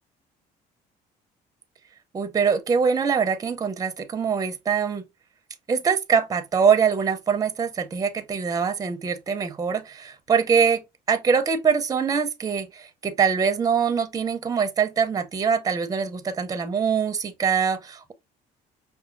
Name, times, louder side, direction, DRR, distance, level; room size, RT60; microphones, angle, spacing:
voice 1, 2.1-5.1 5.7-10.8 11.1-18.1, right 6 dB, 20° right, 0.5 m, -23 dB
5.4 x 2.3 x 2.5 m
cardioid pair, 110°, 17 cm